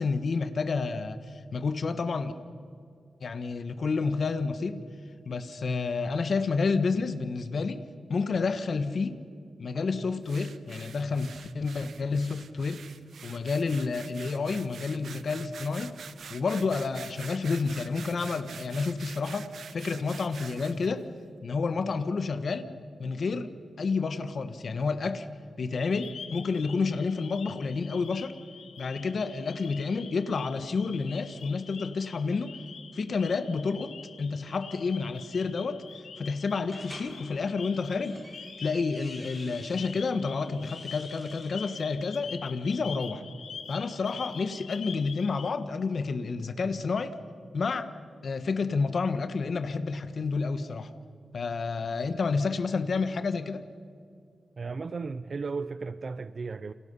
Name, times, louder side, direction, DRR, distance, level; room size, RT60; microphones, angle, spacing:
voice 1, 0.0-2.3 3.2-4.9 5.2-7.8 8.1-9.2 9.6-12.9 13.2-15.9 16.3-21.1 21.4-22.7 23.0-25.3 25.6-28.3 28.8-32.5 32.9-35.8 36.2-38.2 38.6-43.2 43.7-47.2 47.5-47.9 48.2-50.9 51.3-53.6, left 4 dB, 55° left, 1.4 m, -30 dB
sound 1, 10.2-20.9, right 7 dB, 80° right, 0.9 m, -46 dB
sound 2, 25.8-45.5, left 6 dB, 85° left, 1.4 m, -46 dB
sound 3, 36.7-37.1 37.8-40.0 40.5-41.8, right 1 dB, 15° right, 5.1 m, -49 dB
voice 2, 54.6-56.7, right 4 dB, 45° right, 0.5 m, -35 dB
29.0 x 28.0 x 5.6 m
wide cardioid pair, 120°, 0 cm